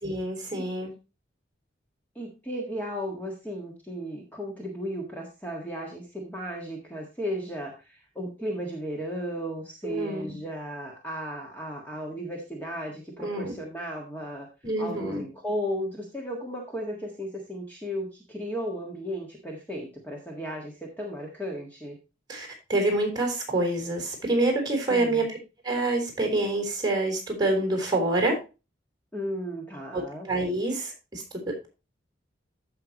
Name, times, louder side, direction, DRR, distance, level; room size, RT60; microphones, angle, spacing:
voice 1, 0.0-0.9 9.8-10.4 13.2-13.5 14.6-15.2 22.3-25.4 25.6-28.4 29.9-31.7, right 2 dB, 20° right, 1 dB, 3.8 m, -27 dB
voice 2, 2.2-14.5 14.8-22.0 24.9-25.2 29.1-30.3, equal, 10° left, -1 dB, 1.6 m, -35 dB
14.5 x 5.8 x 2.9 m, 0.29 s
head